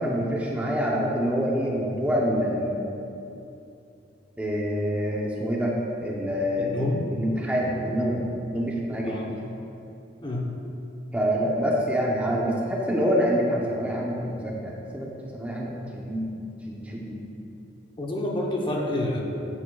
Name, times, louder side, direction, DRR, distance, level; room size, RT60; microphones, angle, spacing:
voice 1, 0.0-2.8 4.4-9.2 11.1-16.3 16.7-17.2, equal, 10° right, -3 dB, 0.7 m, -26 dB
voice 2, 6.6-7.0 9.0-9.3 10.2-10.5 18.0-19.2, left 1 dB, 25° left, -1 dB, 0.8 m, -28 dB
9.1 x 8.6 x 2.3 m, 2.7 s
head